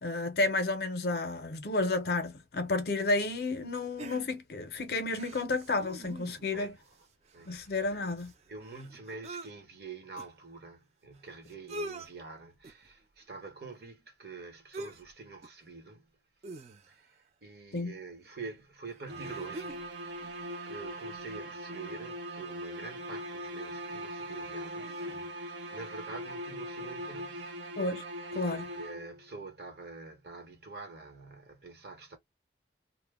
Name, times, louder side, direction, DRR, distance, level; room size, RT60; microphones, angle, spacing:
voice 1, 0.0-6.8 7.5-8.3 17.7-17.9 27.8-28.0 28.3-28.7, left 2 dB, 60° left, 0.5 m, -31 dB
sound 1, 4.0-4.6 5.1-6.6 6.9-7.0 7.2-9.5 10.2-10.3 11.2-11.3 11.5-12.1 12.6-12.9 14.7-15.1 15.4-15.6 16.4-17.1 18.2-18.3 18.9-19.9 20.2-20.3, right 1 dB, 35° right, 0.3 m, -44 dB
voice 2, 8.5-16.1 16.8-19.8 20.1-20.3 20.6-27.6 28.5-32.2, right 4 dB, 55° right, 0.9 m, -46 dB
sound 2, 19.1-29.3, right 1 dB, 85° right, 0.8 m, -40 dB
2.0 x 2.0 x 3.3 m
head